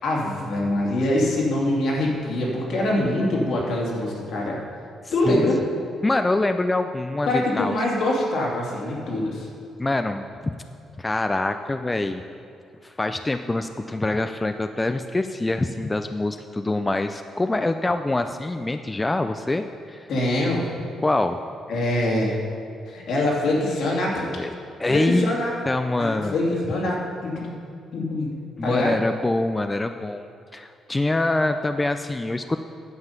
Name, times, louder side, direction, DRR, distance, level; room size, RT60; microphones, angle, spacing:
voice 1, 0.0-4.6 5.1-5.6 7.3-9.5 20.1-20.6 21.7-22.4 22.9-24.2 24.9-25.5 26.0-27.5 27.9-28.3 28.6-28.9, left 1 dB, 70° left, -3 dB, 2.5 m, -24 dB
voice 2, 6.0-7.7 9.8-10.5 11.0-12.2 12.8-20.1 21.0-21.4 24.4-24.5 24.8-25.4 25.7-26.3 28.6-30.2 30.5-32.6, left 2 dB, 15° left, 8 dB, 0.4 m, -25 dB
9.7 x 7.2 x 5.8 m, 2.4 s
cardioid pair, 90°, 0 cm